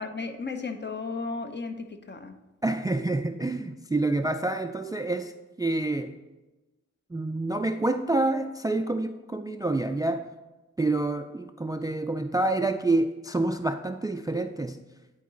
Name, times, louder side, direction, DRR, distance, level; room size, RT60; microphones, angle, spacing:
voice 1, 0.0-2.4, left 4 dB, 35° left, 7 dB, 0.7 m, -34 dB
voice 2, 2.6-5.3 5.6-6.1 7.1-10.2 10.8-14.8, right 2 dB, 15° right, 8 dB, 0.3 m, -27 dB
9.4 x 3.9 x 3.7 m, 1.1 s
cardioid pair, 60°, 30 cm